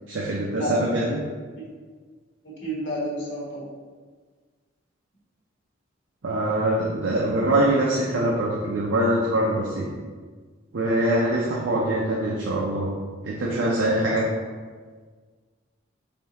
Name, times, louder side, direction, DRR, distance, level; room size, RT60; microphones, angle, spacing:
voice 1, 0.1-1.2 6.2-9.9 10.7-12.9 13.2-14.3, right 1 dB, 75° right, -4 dB, 0.5 m, -23 dB
voice 2, 2.4-3.7 14.0-14.2, equal, 65° left, -5 dB, 1.2 m, -31 dB
3.5 x 2.7 x 4.0 m, 1.5 s
head